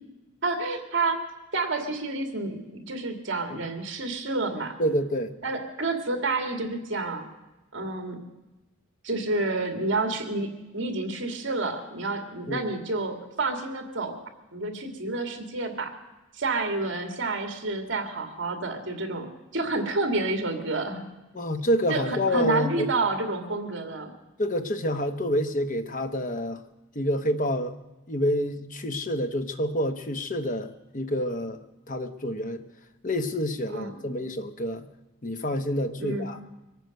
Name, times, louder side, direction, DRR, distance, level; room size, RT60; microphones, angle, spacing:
voice 1, 0.4-1.2 1.5-4.7 5.4-7.2 7.7-8.2 9.0-14.2 14.5-15.9 16.4-19.3 19.5-21.1 21.9-24.1 33.7-33.9 36.0-36.3, right 3 dB, 60° right, 4 dB, 2.3 m, -29 dB
voice 2, 4.8-5.3 12.5-12.7 21.3-22.9 24.4-26.6 26.9-27.8 28.1-32.6 33.0-34.9 35.2-36.4, equal, 40° left, 8 dB, 1.0 m, -28 dB
23.0 x 9.3 x 6.5 m, 1.1 s
head